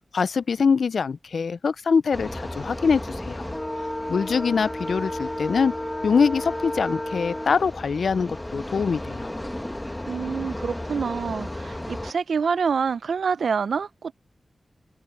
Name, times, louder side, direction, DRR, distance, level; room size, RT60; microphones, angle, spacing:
voice 1, 0.1-3.5 4.1-5.7 6.0-9.3, left 5 dB, 80° left, 0.3 m, -23 dB
sound 1, 2.1-12.1, left 1 dB, 15° left, 1.2 m, -32 dB
voice 2, 10.1-14.1, right 6 dB, 90° right, 0.5 m, -26 dB
wide cardioid pair, 100°, 0 cm